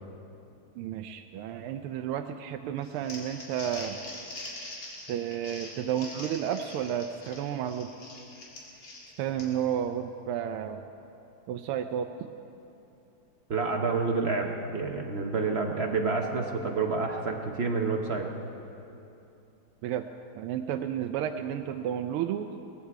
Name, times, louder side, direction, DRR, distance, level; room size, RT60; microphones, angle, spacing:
voice 1, 0.8-4.0 5.1-7.9 9.2-10.9 11.5-12.1 19.8-20.1 20.4-22.5, right 9 dB, 90° right, 6 dB, 1.5 m, -32 dB
Crumpling crinkling, 2.8-9.7, left 2 dB, 90° left, 3.2 m, -43 dB
voice 2, 13.5-14.5 14.7-18.3, right 4 dB, 50° right, 2 dB, 0.8 m, -28 dB
19.0 x 14.5 x 4.7 m, 2.7 s
omnidirectional pair, 2.3 m